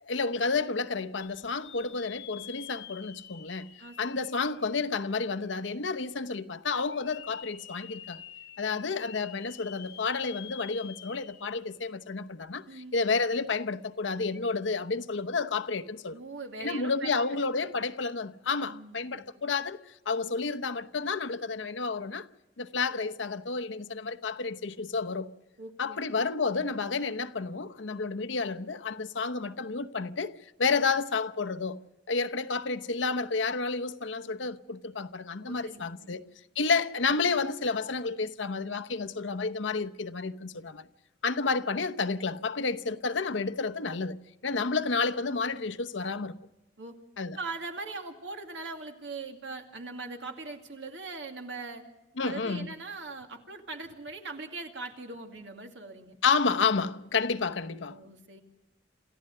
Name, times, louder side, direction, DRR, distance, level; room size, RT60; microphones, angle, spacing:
voice 1, 0.0-3.7 4.0-8.2 8.6-16.2 16.6-22.3 22.6-25.3 25.8-36.2 36.6-40.9 41.2-46.4 47.2-47.4 52.2-52.7 56.2-58.0, left 4 dB, 90° left, 0.9 m, -30 dB
sound 1, 1.2-5.2 5.7-5.8 6.8-11.8 12.2-12.3 14.2-14.4, left 10 dB, 60° left, 3.9 m, -48 dB
voice 2, 12.7-13.0 16.1-17.2 17.6-17.7 18.6-19.2 25.6-26.0 35.4-36.2 46.8-47.0 47.4-51.8 52.2-56.2 57.2-57.4 57.9-58.4, right 3 dB, 80° right, 2.4 m, -41 dB
28.0 x 14.5 x 6.7 m
head